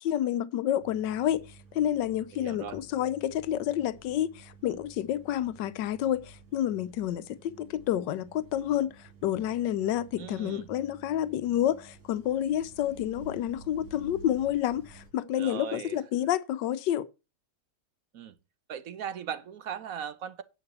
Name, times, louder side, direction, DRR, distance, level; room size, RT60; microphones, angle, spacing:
voice 1, 0.0-1.4 1.7-8.9 9.2-17.1, left 11 dB, 85° left, 1.3 m, -29 dB
sound 1, 0.8-15.1, right 4 dB, 45° right, 2.0 m, -52 dB
voice 2, 2.3-2.8 10.2-10.7 15.3-16.0 18.1-18.3 18.7-20.4, right 8 dB, 60° right, 1.1 m, -38 dB
9.7 x 6.0 x 6.7 m
omnidirectional pair, 1.9 m